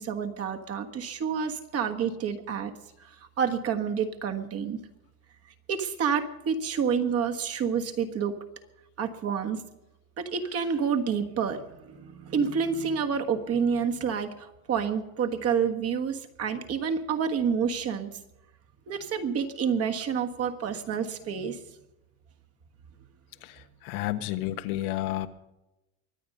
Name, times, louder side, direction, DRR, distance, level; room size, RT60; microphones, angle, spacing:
voice 1, 0.0-2.7 3.0-3.1 3.4-4.8 5.7-8.4 9.0-9.6 10.2-18.2 18.9-21.6, right 6 dB, 35° right, 6 dB, 1.5 m, -28 dB
voice 2, 23.4-25.3, left 14 dB, 75° left, 9 dB, 1.4 m, -31 dB
23.5 x 8.8 x 5.4 m, 0.93 s
supercardioid pair, 135°, 44 cm